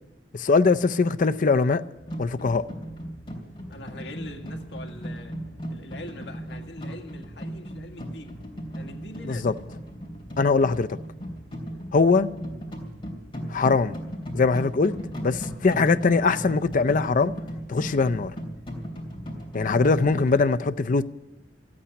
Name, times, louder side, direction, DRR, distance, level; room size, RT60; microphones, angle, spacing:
voice 1, 0.3-1.8 2.2-2.7 9.2-9.5 10.4-11.0 11.9-12.3 13.5-14.0 14.3-14.9 15.2-17.3 17.7-18.3 19.5-21.0, left 4 dB, 50° left, 0.5 m, -21 dB
sound 1, 2.0-20.4, equal, 30° left, 3.2 m, -37 dB
voice 2, 3.7-5.3 5.7-8.4 8.7-9.5, left 1 dB, 70° left, 1.8 m, -42 dB
14.0 x 8.7 x 9.7 m
head